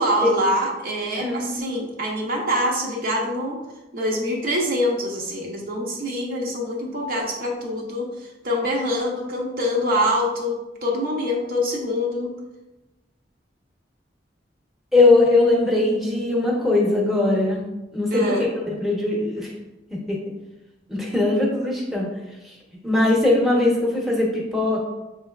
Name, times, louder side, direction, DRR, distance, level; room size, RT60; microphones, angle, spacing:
voice 1, 0.0-3.6 3.9-8.1 8.4-12.3 18.1-18.5, equal, 50° right, -1 dB, 0.7 m, -25 dB
voice 2, 1.2-1.5 14.9-17.6 17.9-18.2 18.7-19.5 19.9-20.2 20.9-22.1 22.8-24.8, left 2 dB, ahead, -4 dB, 0.8 m, -20 dB
6.2 x 3.2 x 2.3 m, 1.0 s
head